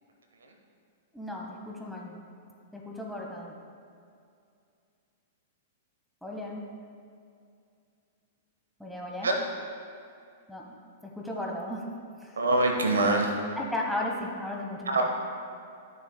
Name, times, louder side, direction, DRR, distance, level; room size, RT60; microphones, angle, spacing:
voice 1, 1.1-2.2 2.7-3.5 6.2-6.6 8.8-9.3 10.5-10.6 11.2-11.8 12.2-12.4 13.6-15.0, left 1 dB, ahead, -2 dB, 1.1 m, -35 dB
voice 2, 12.4-13.3 14.9-15.1, right 2 dB, 70° right, 2 dB, 0.9 m, -24 dB
12.5 x 6.6 x 2.2 m, 2.4 s
figure-of-eight pair, 100°, 0 cm